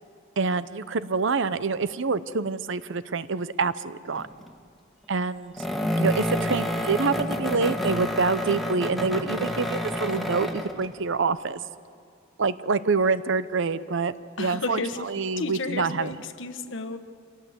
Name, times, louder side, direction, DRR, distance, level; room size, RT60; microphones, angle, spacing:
voice 1, 0.4-4.3 5.1-5.5 6.0-11.6 12.4-14.8 15.0-16.1, right 4 dB, 65° right, 15 dB, 0.7 m, -26 dB
sound 1, 4.1-4.5 5.6-10.9, equal, ahead, 1.7 m, -28 dB
voice 2, 14.4-15.1 15.4-17.0, left 3 dB, 65° left, 10 dB, 1.3 m, -32 dB
27.0 x 18.0 x 8.0 m, 2.4 s
head